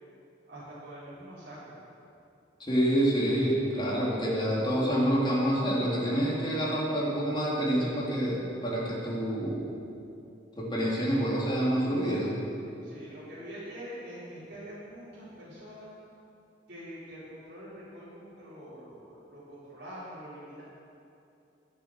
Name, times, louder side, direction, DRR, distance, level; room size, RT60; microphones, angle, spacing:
voice 1, 0.5-1.8 12.8-15.9 16.7-20.6, equal, 55° right, -11 dB, 4.3 m, -45 dB
voice 2, 2.6-9.7 10.6-12.4, equal, 25° left, -5 dB, 3.2 m, -27 dB
13.5 x 9.7 x 7.7 m, 2.7 s
head